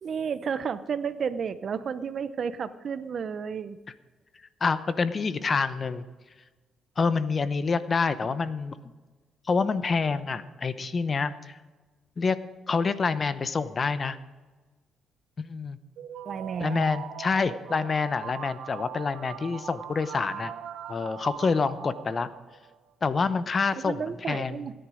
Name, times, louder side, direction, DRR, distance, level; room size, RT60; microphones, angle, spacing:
voice 1, 0.0-3.8 16.3-16.8 23.8-24.7, right 6 dB, 50° right, 13 dB, 0.7 m, -32 dB
voice 2, 4.6-6.0 7.0-8.8 9.5-11.6 12.2-12.4 12.7-14.2 15.4-15.8 16.6-20.5 20.9-22.3 23.0-24.0 24.3-24.5, left 4 dB, 40° left, 13 dB, 0.8 m, -27 dB
sound 1, 16.0-22.8, right 9 dB, 80° right, 0.9 m, -41 dB
17.5 x 10.5 x 5.0 m, 1.3 s
cardioid pair, 90°, 0 cm